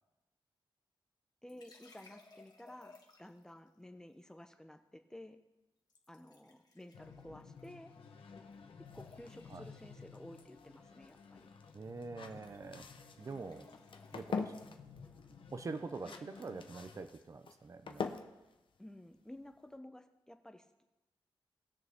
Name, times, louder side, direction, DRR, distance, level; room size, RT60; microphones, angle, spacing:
voice 1, 1.4-5.4 6.1-7.9 8.9-11.5 16.0-16.2 18.8-20.8, left 1 dB, 5° left, 7 dB, 0.7 m, -53 dB
sound 1, 1.5-3.5 5.9-8.3 8.5-9.7 11.5-11.7 12.0-14.7, left 3 dB, 45° left, 1.5 m, -61 dB
sound 2, 6.9-17.0, left 5 dB, 85° left, 1.1 m, -55 dB
sound 3, 8.9-19.7, left 5 dB, 65° left, 0.8 m, -46 dB
voice 2, 11.7-12.9 13.2-13.7 14.1-14.5 15.5-18.2, right 4 dB, 35° right, 10 dB, 0.6 m, -45 dB
19.5 x 6.6 x 3.6 m, 1.0 s
wide cardioid pair, 130°, 9 cm